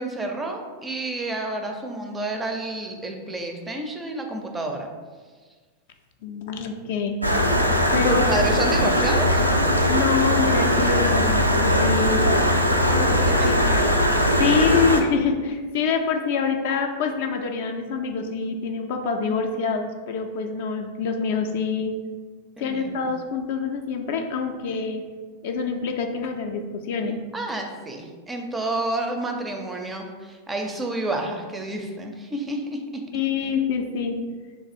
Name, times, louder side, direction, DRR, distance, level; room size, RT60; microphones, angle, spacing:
voice 1, 0.0-4.9 8.1-9.4 12.9-14.0 14.3-14.9 22.6-23.0 27.3-33.1 33.4-33.5, right 2 dB, 10° right, 3 dB, 0.4 m, -30 dB
voice 2, 6.2-7.2 7.9-8.2 9.9-12.3 13.0-13.6 14.4-21.9 22.6-25.0 25.4-27.2 33.1-34.1, left 5 dB, 50° left, 4 dB, 0.3 m, -26 dB
Stream, 7.2-15.0, equal, 90° right, 0.3 m, -20 dB
3.1 x 2.3 x 4.2 m, 1.4 s
figure-of-eight pair, 90°, 0 cm